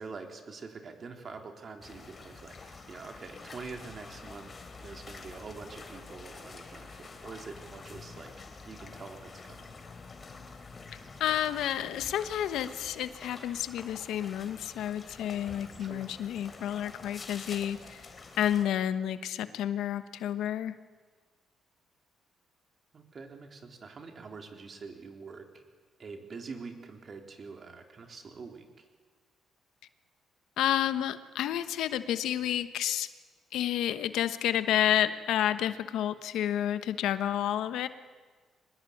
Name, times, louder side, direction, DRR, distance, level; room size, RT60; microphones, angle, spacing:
voice 1, 0.0-4.5 4.8-8.3 8.7-9.7 15.8-16.1 22.9-25.6 26.0-28.9, right 4 dB, 45° right, 4 dB, 3.6 m, -45 dB
sound 1, 1.8-18.7, left 4 dB, 35° left, 3.5 m, -47 dB
voice 2, 11.2-18.1 18.4-20.7 30.6-33.1 33.5-37.9, left 11 dB, 85° left, 12 dB, 1.1 m, -30 dB
24.0 x 20.0 x 8.7 m, 1.4 s
cardioid pair, 90°, 0 cm